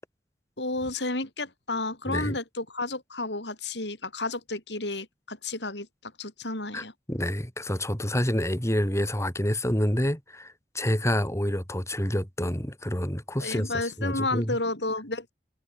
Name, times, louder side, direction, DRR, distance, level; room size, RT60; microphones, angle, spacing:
voice 1, 0.6-6.9 13.4-15.3, left 2 dB, 80° left, 7.5 m, -32 dB
voice 2, 2.1-2.4 6.7-14.6, equal, 15° left, 7.0 m, -28 dB
head